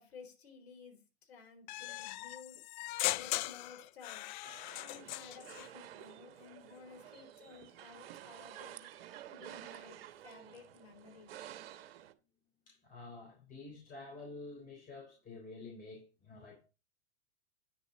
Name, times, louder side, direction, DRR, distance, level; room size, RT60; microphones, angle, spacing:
voice 1, 0.0-2.6 3.1-4.3 4.8-8.9 9.3-11.4, left 5 dB, 65° left, 3.8 m, -55 dB
sound 1, 1.7-5.7, left 17 dB, 45° left, 0.4 m, -39 dB
sound 2, 4.4-12.1, right 12 dB, 60° right, 1.0 m, -51 dB
voice 2, 12.7-16.6, left 3 dB, 25° left, 3.7 m, -49 dB
9.6 x 7.2 x 3.9 m
hypercardioid pair, 105°, 33 cm